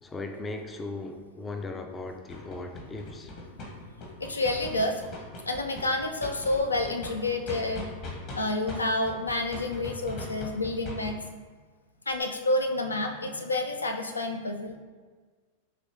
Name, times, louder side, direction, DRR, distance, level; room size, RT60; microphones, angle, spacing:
voice 1, 0.0-3.3, left 2 dB, 15° left, 5 dB, 0.4 m, -38 dB
sound 1, 2.3-8.4 8.7-11.1, left 2 dB, 40° left, 1.2 m, -40 dB
voice 2, 4.2-5.0 5.5-7.9 8.3-11.2 12.1-14.8, left 2 dB, 80° left, 5 dB, 0.4 m, -29 dB
5.6 x 3.0 x 3.1 m, 1.5 s
figure-of-eight pair, 90°, 0 cm